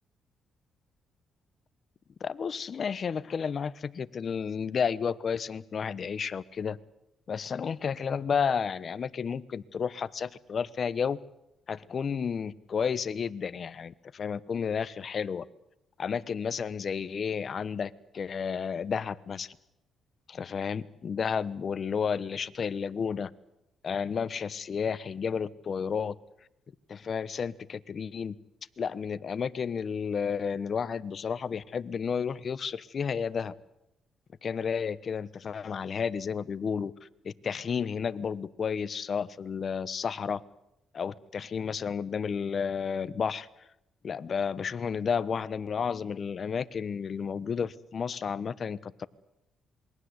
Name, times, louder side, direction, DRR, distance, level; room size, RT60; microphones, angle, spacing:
voice 1, 2.2-6.8 7.3-11.2 11.7-15.4 16.0-19.5 20.3-23.3 23.8-26.2 26.9-28.4 28.8-33.5 34.4-36.9 37.2-40.4 40.9-43.5 44.0-49.1, left 6 dB, 50° left, 17 dB, 1.1 m, -32 dB
27.5 x 22.0 x 8.2 m, 0.84 s
cardioid pair, 90°, 0 cm